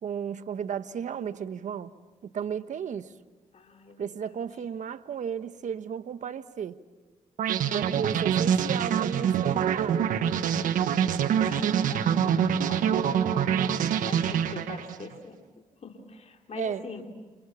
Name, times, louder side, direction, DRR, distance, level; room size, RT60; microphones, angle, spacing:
voice 1, 0.0-1.9 2.2-3.1 4.0-6.8 7.7-10.1 16.5-16.8, right 7 dB, 65° right, 12 dB, 1.2 m, -34 dB
voice 2, 3.5-4.1 10.8-13.2 14.1-15.4 15.8-17.0, left 4 dB, 55° left, 2 dB, 3.1 m, -43 dB
sound 1, 7.4-15.1, right 8 dB, 85° right, 1.4 m, -25 dB
28.5 x 28.0 x 7.2 m, 1.3 s
cardioid pair, 65°, 13 cm